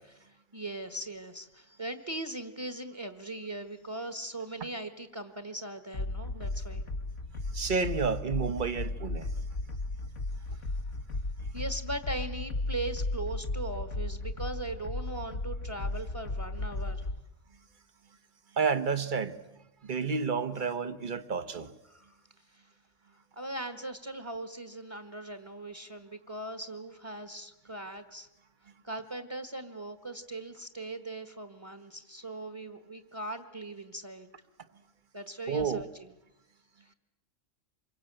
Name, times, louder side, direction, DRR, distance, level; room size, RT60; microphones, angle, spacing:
voice 1, 0.2-6.8 10.5-10.7 11.5-17.1 21.9-22.1 22.5-22.6 23.3-28.3 28.8-34.3 35.1-36.1 36.8-36.9, right 2 dB, 25° right, 1.5 m, -39 dB
sound 1, 5.9-17.2, left 2 dB, 75° left, 1.8 m, -35 dB
voice 2, 7.5-9.3 18.6-19.4 19.8-21.7 35.5-35.8, right 5 dB, 45° right, 1.3 m, -30 dB
26.0 x 23.0 x 9.0 m
omnidirectional pair, 1.2 m